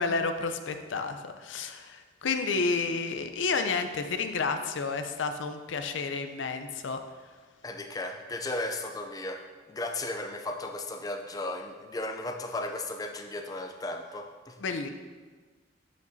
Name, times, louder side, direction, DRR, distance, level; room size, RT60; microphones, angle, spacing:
voice 1, 0.0-7.0 14.6-14.9, left 4 dB, 80° left, 7 dB, 0.6 m, -30 dB
voice 2, 7.6-9.4 9.7-14.6, left 2 dB, 20° left, 4 dB, 0.4 m, -35 dB
12.0 x 5.2 x 2.7 m, 1.4 s
head